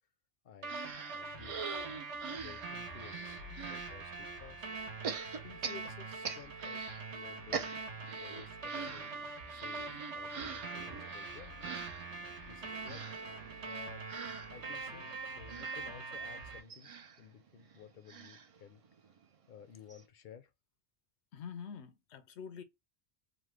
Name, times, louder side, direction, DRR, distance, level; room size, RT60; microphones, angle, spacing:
voice 1, 0.4-0.8 1.1-1.8 2.4-4.7 5.4-7.7 8.2-9.1 9.5-11.8 12.5-13.1 13.6-14.1 14.5-16.9 17.2-18.8 19.5-20.5, left 8 dB, 60° left, 0.6 m, -54 dB
sound 1, 0.6-16.6, right 3 dB, 90° right, 1.1 m, -43 dB
sound 2, 0.7-3.9 5.0-7.0 7.3-19.2 19.6-19.7 19.9-20.0, right 6 dB, 60° right, 0.3 m, -45 dB
voice 2, 21.3-22.6, left 7 dB, 90° left, 0.9 m, -46 dB
3.1 x 2.1 x 3.2 m
omnidirectional pair, 1.1 m